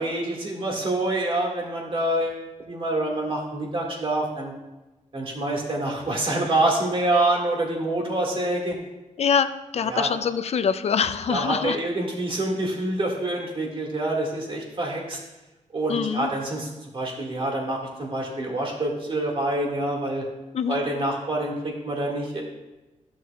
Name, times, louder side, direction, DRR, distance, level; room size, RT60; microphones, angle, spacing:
voice 1, 0.0-2.4 2.7-4.5 5.1-8.8 9.9-10.1 11.3-15.2 15.7-16.7 16.9-20.2 20.7-22.4, right 1 dB, 45° right, -1 dB, 1.9 m, -26 dB
voice 2, 9.2-11.8 15.9-16.3 20.5-20.8, left 6 dB, 55° left, 10 dB, 0.4 m, -24 dB
13.0 x 6.3 x 2.3 m, 1.1 s
wide cardioid pair, 115°, 13 cm